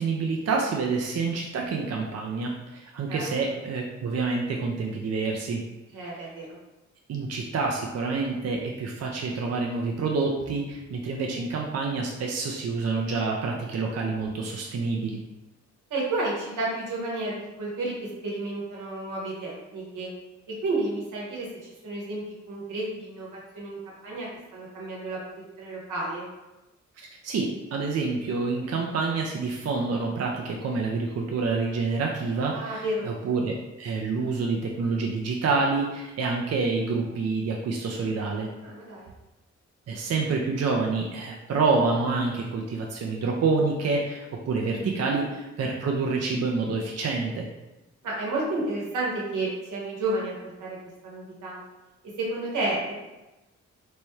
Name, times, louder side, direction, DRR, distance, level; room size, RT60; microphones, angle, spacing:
voice 1, 0.0-5.6 7.1-15.2 27.0-38.5 39.9-47.5, right 4 dB, 55° right, 0 dB, 0.5 m, -27 dB
voice 2, 5.9-6.6 15.9-17.9 18.2-20.1 20.6-21.5 21.8-23.3 23.5-23.8 24.0-26.3 32.5-33.1 38.6-39.1 44.8-45.1 48.0-50.8 51.0-51.6 52.2-52.9, right 2 dB, 90° right, -4 dB, 1.1 m, -31 dB
4.1 x 2.2 x 3.1 m, 1.0 s
cardioid pair, 60°, 30 cm